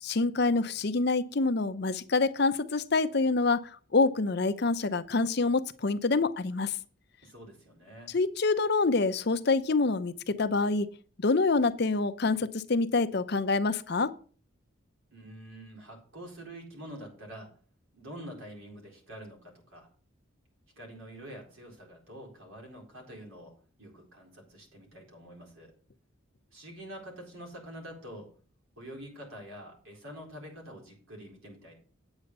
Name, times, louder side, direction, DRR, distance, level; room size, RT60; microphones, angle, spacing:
voice 1, 0.0-6.7 8.1-10.9 11.2-14.1, left 3 dB, 50° left, 12 dB, 0.6 m, -26 dB
voice 2, 7.2-8.1 15.1-17.5 17.9-19.9 20.8-23.5 23.8-25.7 26.5-28.3 28.8-31.8, equal, 75° right, 0 dB, 4.2 m, -46 dB
8.9 x 8.2 x 5.3 m, 0.41 s
head